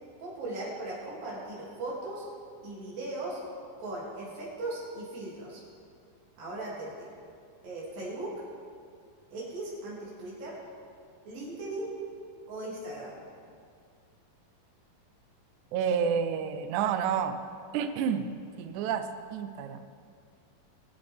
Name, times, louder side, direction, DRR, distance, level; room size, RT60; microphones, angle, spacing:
voice 1, 0.2-2.2 2.6-3.4 3.8-5.6 6.4-7.1 7.6-8.3 9.3-10.6 11.3-11.9 12.5-13.2, right 2 dB, 65° right, -6 dB, 4.4 m, -38 dB
voice 2, 15.7-17.4 17.7-18.3 18.6-19.0 19.3-19.8, right 7 dB, 85° right, 8 dB, 1.7 m, -29 dB
22.0 x 8.0 x 3.5 m, 2.2 s
omnidirectional pair, 4.3 m